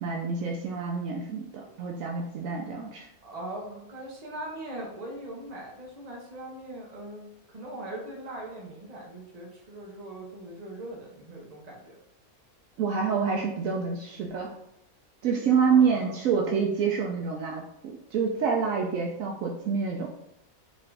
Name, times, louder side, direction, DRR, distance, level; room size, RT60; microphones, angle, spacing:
voice 1, 0.0-3.1 12.8-14.6 15.2-20.1, right 6 dB, 70° right, 0 dB, 1.0 m, -27 dB
voice 2, 3.2-12.0 15.6-16.1, right 1 dB, 30° right, -2 dB, 1.0 m, -40 dB
3.9 x 3.7 x 3.4 m, 0.77 s
omnidirectional pair, 1.5 m